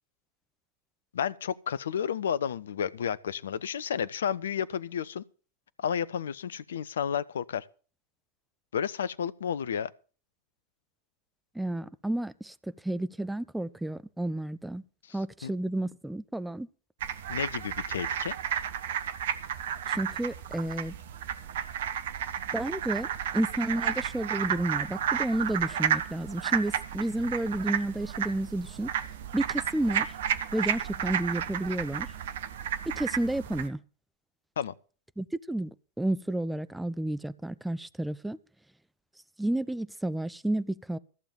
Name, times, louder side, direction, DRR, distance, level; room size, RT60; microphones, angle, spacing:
voice 1, 1.1-5.2 5.8-7.7 8.7-9.9 15.1-15.5 17.3-18.4 34.6-34.7, left 8 dB, 65° left, 0.6 m, -32 dB
voice 2, 11.6-12.5 12.8-14.8 15.1-16.7 19.9-21.0 22.5-23.1 23.3-28.9 29.3-30.1 30.5-32.1 32.9-33.8 35.2-35.7 36.0-38.4 39.4-41.0, right 1 dB, 5° right, 0.5 m, -31 dB
sound 1, 17.0-33.7, right 9 dB, 60° right, 1.0 m, -32 dB
14.5 x 6.9 x 7.3 m
figure-of-eight pair, 90°, 0 cm